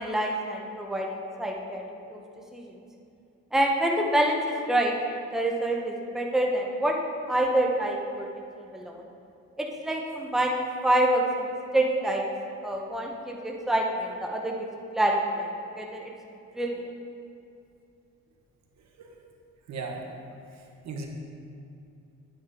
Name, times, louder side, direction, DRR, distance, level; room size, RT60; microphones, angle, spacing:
voice 1, 0.0-1.8 2.1-2.2 2.5-2.7 3.5-7.0 7.3-8.3 8.7-9.0 9.6-12.2 12.6-14.7 14.9-15.5 15.8-16.1 16.5-16.7, right 1 dB, ahead, 0 dB, 1.0 m, -27 dB
voice 2, 19.7-20.1 20.5-21.1, right 4 dB, 65° right, 1 dB, 1.4 m, -37 dB
9.5 x 9.0 x 3.8 m, 2.6 s
cardioid pair, 90°, 30 cm